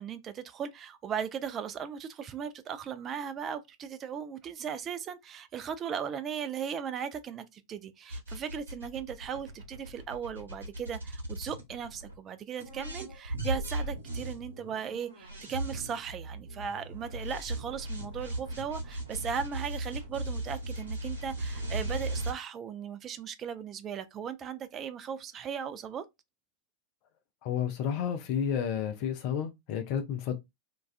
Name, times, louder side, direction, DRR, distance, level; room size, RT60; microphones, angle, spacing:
voice 1, 0.0-26.0, right 7 dB, 30° right, 0.3 m, -37 dB
sound 1, 8.1-12.2 12.6-22.3, right 1 dB, 75° right, 1.0 m, -37 dB
voice 2, 27.4-30.3, left 8 dB, 45° left, 0.4 m, -31 dB
2.3 x 2.2 x 2.3 m
figure-of-eight pair, 90°, 0 cm